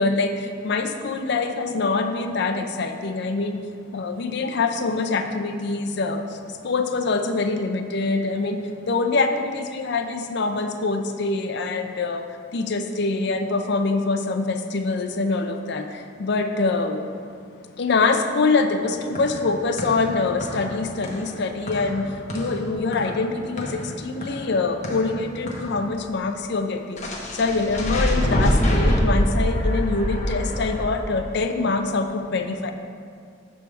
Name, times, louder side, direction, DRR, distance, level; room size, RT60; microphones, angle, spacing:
voice 1, 0.0-3.7 3.9-17.0 17.8-32.7, left 3 dB, 60° left, 6 dB, 0.5 m, -24 dB
sound 1, 18.9-25.9 27.0-30.9, equal, 35° left, 0.9 m, -26 dB
8.4 x 3.4 x 6.2 m, 2.3 s
head